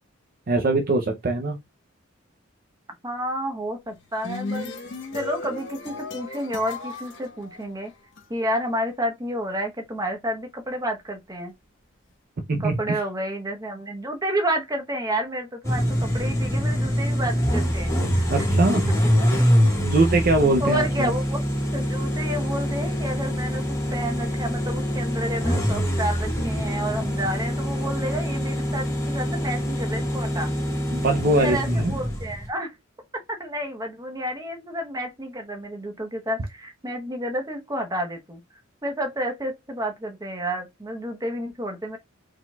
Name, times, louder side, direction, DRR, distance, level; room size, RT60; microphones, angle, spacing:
voice 1, 0.5-1.6 12.5-13.0 18.3-18.9 19.8-21.1 30.9-32.0, right 2 dB, 45° right, 0.5 m, -22 dB
voice 2, 3.0-4.7 5.1-7.9 8.3-11.5 12.6-18.3 19.2-19.3 20.6-21.4 21.7-30.5 31.4-32.7 33.4-38.4 38.8-42.0, right 1 dB, 20° right, 0.9 m, -30 dB
sound 1, 3.9-8.2, left 3 dB, 60° left, 1.2 m, -35 dB
sound 2, 15.6-32.5, equal, 15° left, 1.6 m, -24 dB
4.6 x 3.8 x 2.2 m
head